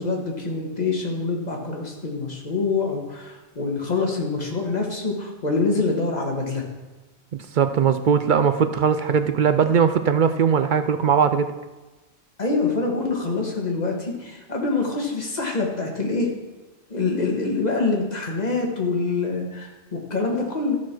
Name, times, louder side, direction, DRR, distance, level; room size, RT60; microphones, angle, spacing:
voice 1, 0.0-6.6 12.4-16.3 16.9-20.8, left 3 dB, 40° left, 0 dB, 1.7 m, -25 dB
voice 2, 7.5-11.5, right 7 dB, 60° right, 9 dB, 0.5 m, -19 dB
13.0 x 4.5 x 6.0 m, 1.1 s
omnidirectional pair, 1.1 m